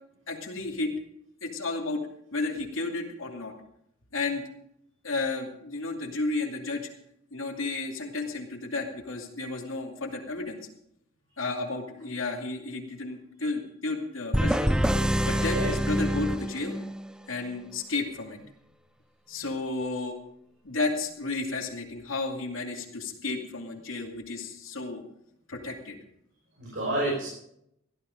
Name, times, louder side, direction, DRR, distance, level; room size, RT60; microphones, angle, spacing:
voice 1, 0.3-0.9 1.4-2.0 2.3-3.5 4.1-4.4 5.0-6.9 7.3-10.6 11.4-14.7 15.2-16.8 17.3-18.4 19.3-20.2 20.6-25.0 25.5-26.0, left 3 dB, 80° left, 2 dB, 2.6 m, -32 dB
sound 1, 14.3-17.1, equal, 5° right, 0.5 m, -26 dB
voice 2, 15.3-15.7 26.6-27.3, right 1 dB, 65° right, -4 dB, 5.6 m, -29 dB
16.5 x 12.5 x 5.2 m, 0.75 s
head